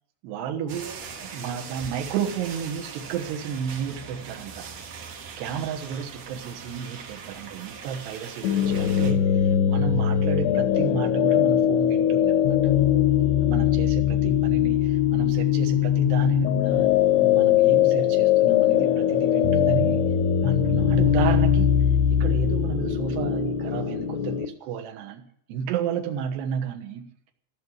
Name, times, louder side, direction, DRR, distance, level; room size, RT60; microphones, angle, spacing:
voice 1, 0.2-0.9 1.2-4.7 5.4-12.6 13.4-20.1 20.4-21.7 22.1-25.2 25.5-27.0, right 7 dB, 75° right, 4 dB, 3.3 m, -32 dB
sound 1, 0.7-9.1, right 5 dB, 60° right, 1.9 m, -40 dB
sound 2, 8.4-24.5, left 10 dB, 90° left, 3.2 m, -21 dB
15.0 x 6.5 x 9.5 m, 0.69 s
omnidirectional pair, 5.1 m